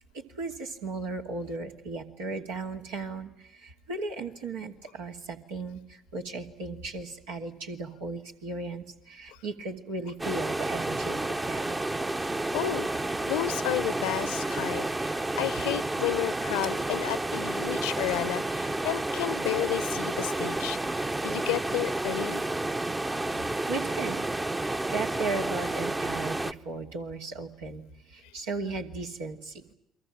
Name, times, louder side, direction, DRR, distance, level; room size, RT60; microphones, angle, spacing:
voice 1, 0.1-11.8 23.7-24.3 24.5-29.7, right 3 dB, 80° right, 0 dB, 2.6 m, -36 dB
sound 1, 10.2-26.5, right 2 dB, 20° right, 1.0 m, -30 dB
voice 2, 12.5-12.9 13.3-21.0 21.2-22.4, left 15 dB, 75° left, 18 dB, 0.9 m, -32 dB
30.0 x 23.5 x 7.5 m, 0.81 s
hypercardioid pair, 55°, 0 cm